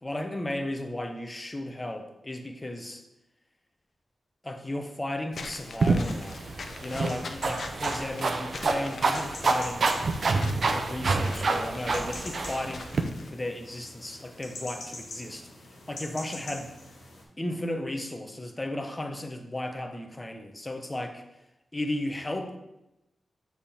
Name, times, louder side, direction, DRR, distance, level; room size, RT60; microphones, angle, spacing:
voice 1, 0.0-3.0 4.4-6.4 6.8-9.9 10.6-12.8 13.3-15.5 15.9-16.7 17.4-21.2 21.7-22.6, left 1 dB, 20° left, 5 dB, 0.8 m, -34 dB
Walk footsteps / Squeak, 5.3-13.3, left 3 dB, 65° left, 0.5 m, -43 dB
sound 1, 5.8-13.0, right 3 dB, 60° right, 0.6 m, -27 dB
sound 2, 6.0-17.2, left 2 dB, 85° left, 1.5 m, -45 dB
6.7 x 3.6 x 4.3 m, 0.91 s
cardioid pair, 75°, 0 cm